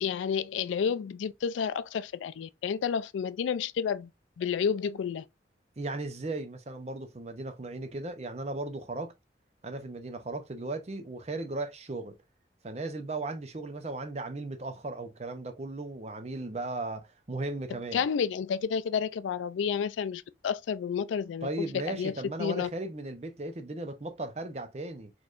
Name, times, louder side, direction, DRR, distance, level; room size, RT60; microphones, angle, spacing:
voice 1, 0.0-4.1 4.4-5.3 17.7-21.5 21.7-22.7, left 7 dB, 85° left, 0.3 m, -30 dB
voice 2, 5.8-9.1 9.6-12.1 12.6-18.0 21.4-25.1, right 2 dB, 35° right, 0.6 m, -36 dB
4.3 x 3.1 x 2.4 m
head